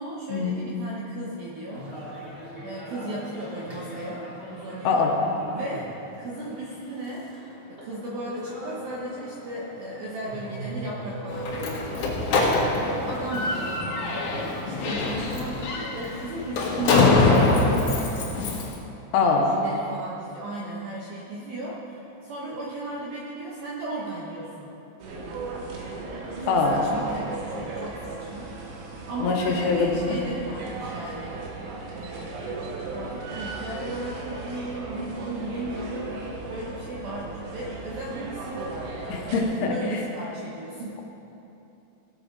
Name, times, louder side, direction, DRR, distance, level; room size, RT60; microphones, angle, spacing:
voice 1, 0.0-1.9 2.6-5.1 5.5-5.9 6.2-7.3 7.7-12.1 12.7-18.1 19.4-24.8 26.4-28.7 29.0-31.4 31.8-36.2 36.5-41.0, right 1 dB, 70° right, -4 dB, 2.3 m, -35 dB
sound 1, 1.7-14.5, equal, 15° right, 2.5 m, -40 dB
Slam, 11.3-18.7, left 3 dB, 65° left, 3.6 m, -24 dB
voice 2, 19.1-19.5 26.5-26.8 29.2-29.9 39.1-39.4 39.9-40.0, left 4 dB, 80° left, 1 dB, 3.6 m, -23 dB
sound 2, 25.0-39.4, right 3 dB, 85° right, 4.0 m, -36 dB
18.0 x 7.7 x 5.3 m, 2.9 s
omnidirectional pair, 5.7 m